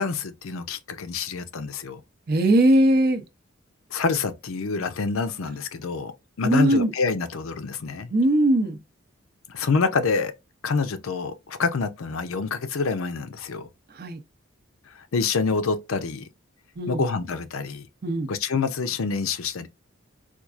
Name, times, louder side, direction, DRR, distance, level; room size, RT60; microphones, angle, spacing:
voice 1, 0.0-2.0 3.9-8.1 9.5-10.3 10.6-13.7 15.0-16.3 16.9-17.9 18.3-19.7, left 4 dB, 80° left, 0.5 m, -27 dB
voice 2, 2.3-3.2 6.4-6.9 8.1-8.8 13.9-14.2 16.8-17.0 18.0-18.3, right 1 dB, 45° right, 0.5 m, -20 dB
4.4 x 2.4 x 2.3 m
head